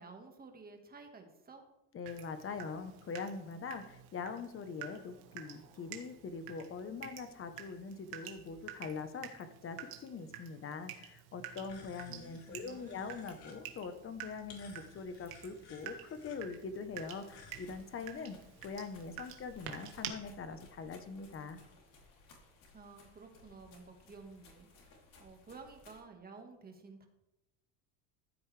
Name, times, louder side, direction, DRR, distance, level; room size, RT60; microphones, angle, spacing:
voice 1, 0.0-1.6 12.1-13.1 22.7-27.1, right 4 dB, 20° right, 3 dB, 1.7 m, -53 dB
voice 2, 1.9-18.4 18.6-21.6, left 5 dB, 30° left, 9 dB, 1.0 m, -43 dB
Water tap faucet / Drip, 2.1-20.1, right 10 dB, 90° right, 1.8 m, -50 dB
sound 1, 11.7-17.7, left 4 dB, 60° left, 2.9 m, -58 dB
sound 2, 17.0-26.0, left 2 dB, 45° left, 3.3 m, -60 dB
14.5 x 8.4 x 3.3 m, 0.94 s
cardioid pair, 135°, 44 cm